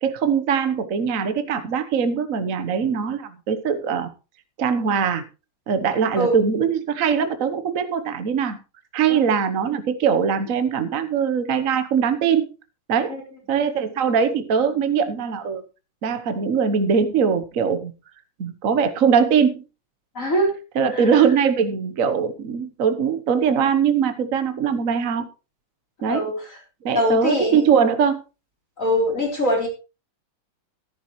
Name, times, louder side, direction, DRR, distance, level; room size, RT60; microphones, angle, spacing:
voice 1, 0.0-4.1 4.6-5.2 5.7-8.6 8.9-12.4 12.9-13.2 13.5-15.6 16.0-17.9 18.4-19.6 20.7-25.3 26.0-26.3 26.8-28.2, right 7 dB, 45° right, 9 dB, 1.2 m, -21 dB
voice 2, 20.1-20.5 20.9-21.2 26.1-26.6 26.9-27.7 28.8-29.7, equal, 35° left, 0 dB, 4.0 m, -23 dB
14.0 x 11.5 x 3.1 m, 0.31 s
omnidirectional pair, 2.3 m